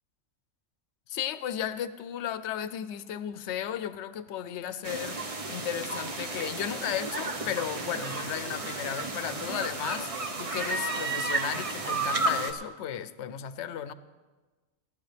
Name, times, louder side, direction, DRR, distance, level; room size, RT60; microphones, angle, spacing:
voice 1, 1.1-10.1 10.4-13.9, left 9 dB, 70° left, 13 dB, 0.9 m, -35 dB
sound 1, 4.8-12.5, right 2 dB, 30° right, 0.9 m, -32 dB
18.0 x 11.0 x 3.4 m, 1.3 s
omnidirectional pair, 1.2 m